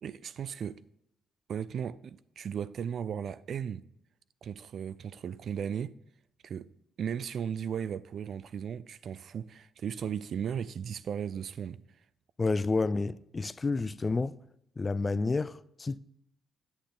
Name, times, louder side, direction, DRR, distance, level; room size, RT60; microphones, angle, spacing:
voice 1, 0.0-0.8 1.5-3.8 4.4-5.9 6.4-6.7 7.0-11.8, right 8 dB, 60° right, 0.3 m, -36 dB
voice 2, 12.4-14.4 14.8-16.0, left 3 dB, 25° left, 0.3 m, -30 dB
8.5 x 6.8 x 3.9 m
cardioid pair, 90°, 0 cm